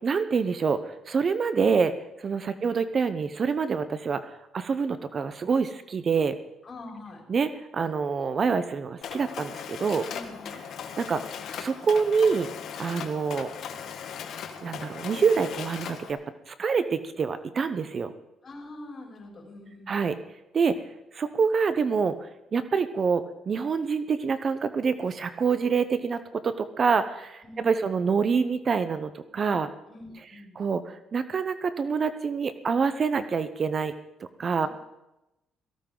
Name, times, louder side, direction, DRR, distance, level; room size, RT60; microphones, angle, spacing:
voice 1, 0.0-6.4 7.3-10.1 11.0-11.2 11.5-12.5 12.8-13.5 14.6-16.2 16.5-18.1 19.9-20.1 20.5-20.8 21.1-29.7 30.6-33.9 34.4-34.7, right 5 dB, 40° right, 12 dB, 0.8 m, -26 dB
voice 2, 6.6-7.2 10.1-11.0 18.4-20.1 27.4-27.9 29.9-30.7 34.6-34.7, left 2 dB, 35° left, -3 dB, 6.0 m, -45 dB
Mechanisms, 9.0-16.1, left 7 dB, 65° left, 1.4 m, -38 dB
17.5 x 15.0 x 3.9 m, 0.93 s
cardioid pair, 105°, 0 cm